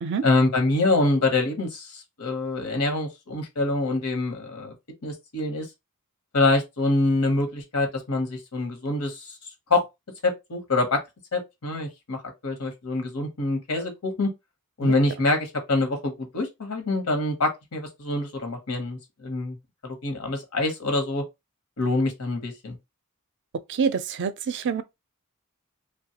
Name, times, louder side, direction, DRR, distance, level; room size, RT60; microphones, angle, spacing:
voice 1, 0.2-4.7 5.0-5.7 6.3-9.4 9.7-9.8 10.2-11.0 11.3-12.2 12.4-14.3 14.8-19.6 19.8-21.2 21.8-22.8, left 2 dB, 80° left, 0.9 m, -25 dB
voice 2, 23.7-24.8, right 6 dB, 55° right, 0.4 m, -26 dB
2.9 x 2.2 x 2.8 m
head